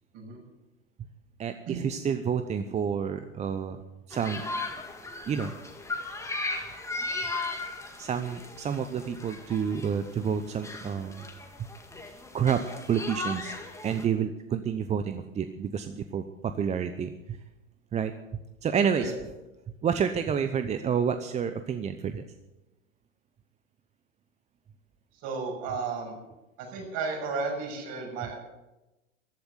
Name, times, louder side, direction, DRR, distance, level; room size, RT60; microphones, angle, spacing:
voice 1, 1.4-3.8 4.1-4.4 5.2-5.5 8.0-11.2 12.1-12.6 12.9-13.5 13.8-17.4 17.9-18.1 18.6-19.1 19.8-22.2, right 7 dB, 15° right, 9 dB, 0.8 m, -29 dB
sound 1, 4.1-14.1, left 3 dB, 5° left, 2.0 m, -37 dB
voice 2, 25.2-26.2 26.6-28.3, right 4 dB, 45° right, 1 dB, 7.3 m, -33 dB
15.0 x 11.5 x 8.1 m, 1.0 s
hypercardioid pair, 115°, 39 cm